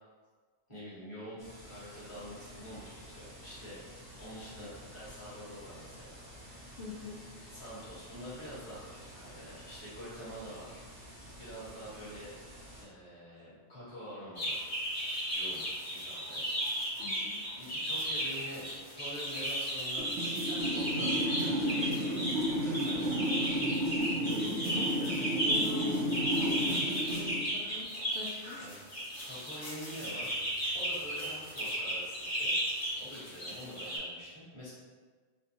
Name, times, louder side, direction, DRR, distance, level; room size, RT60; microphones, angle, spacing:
voice 1, 0.7-3.8 4.2-6.2 7.5-12.3 12.8-14.6 15.3-15.6 16.0-16.4 17.6-18.7 18.9-23.6 28.6-28.7 29.2-30.4 30.7-32.5 33.0-34.7, equal, 25° left, -9 dB, 1.2 m, -46 dB
sound 1, 1.4-12.8, equal, 20° right, 0.7 m, -51 dB
voice 2, 6.8-7.2 17.0-17.4 24.2-26.1 26.3-27.9 28.1-28.6, left 3 dB, 70° left, -6 dB, 0.9 m, -44 dB
sound 2, 14.3-34.0, equal, 45° left, 1.4 m, -35 dB
sound 3, 20.0-27.5, equal, 65° right, 0.8 m, -32 dB
4.4 x 2.2 x 2.8 m, 1.5 s
omnidirectional pair, 1.2 m